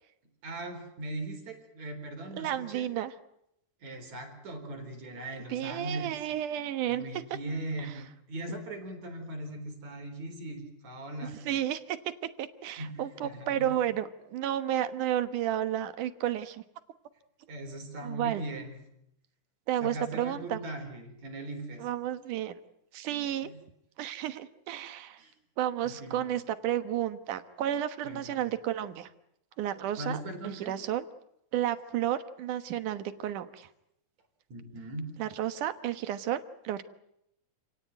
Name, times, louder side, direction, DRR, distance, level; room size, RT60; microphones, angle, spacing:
voice 1, 0.4-2.9 3.8-6.2 6.9-11.4 12.8-13.7 17.5-18.8 19.8-21.9 23.4-23.6 25.2-25.3 25.8-26.3 28.0-28.5 30.0-30.7 34.5-35.1, right 1 dB, 60° right, 5 dB, 5.4 m, -39 dB
voice 2, 2.4-3.1 5.5-7.0 11.5-16.6 18.0-18.4 19.7-20.6 21.8-22.6 22.9-23.5 24.0-25.2 25.6-29.1 29.6-31.1 31.5-33.7 35.2-36.9, right 11 dB, 85° right, 11 dB, 2.8 m, -32 dB
28.5 x 18.0 x 9.2 m, 0.78 s
omnidirectional pair, 3.5 m